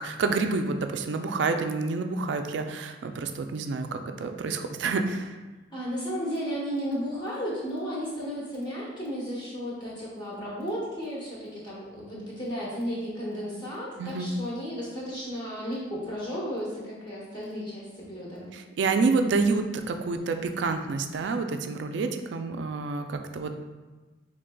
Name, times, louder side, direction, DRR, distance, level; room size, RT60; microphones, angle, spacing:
voice 1, 0.0-5.4 14.0-14.3 18.5-23.5, right 4 dB, 70° right, 6 dB, 0.3 m, -28 dB
voice 2, 5.7-18.5, equal, 25° left, -6 dB, 1.0 m, -34 dB
5.0 x 3.2 x 2.2 m, 1.2 s
head